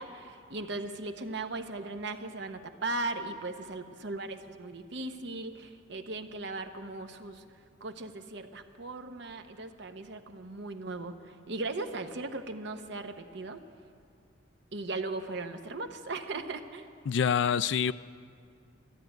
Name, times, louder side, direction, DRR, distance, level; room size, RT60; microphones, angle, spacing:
voice 1, 0.0-7.4 7.8-13.6 14.7-16.9, right 2 dB, 60° right, 7 dB, 0.8 m, -38 dB
voice 2, 17.1-17.9, left 7 dB, 65° left, 16 dB, 0.3 m, -26 dB
13.0 x 11.0 x 9.0 m, 2.2 s
head